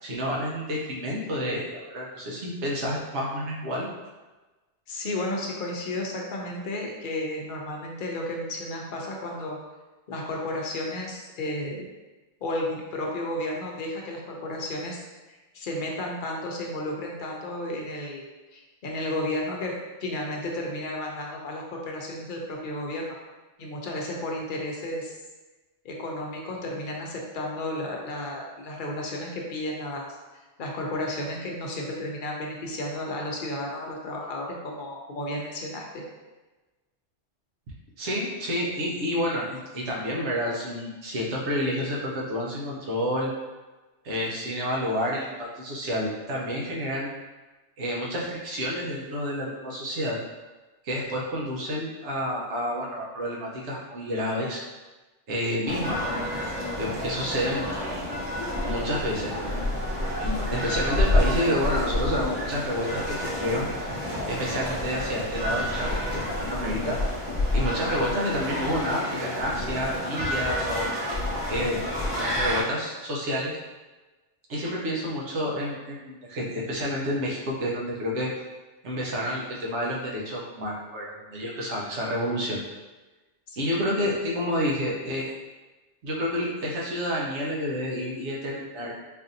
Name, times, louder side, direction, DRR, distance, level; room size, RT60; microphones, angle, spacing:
voice 1, 0.0-3.9 38.0-43.3 44.0-47.1 47.8-50.2 50.8-54.6 55.3-56.3 56.8-57.6 58.6-63.9 64.3-67.0 67.5-70.9 71.5-71.8 72.3-73.5 74.5-78.3 78.8-82.6 83.6-85.3 86.0-88.9, equal, 75° right, -3 dB, 1.1 m, -29 dB
voice 2, 4.9-9.6 10.1-11.9 12.4-18.3 18.5-19.7 20.0-23.2 23.6-25.1 25.8-30.1 30.6-36.0 83.5-83.6, left 1 dB, 55° left, -1 dB, 0.7 m, -33 dB
sound 1, 55.7-72.6, left 1 dB, 25° right, 0.8 m, -29 dB
4.4 x 2.6 x 2.6 m, 1.2 s
omnidirectional pair, 1.2 m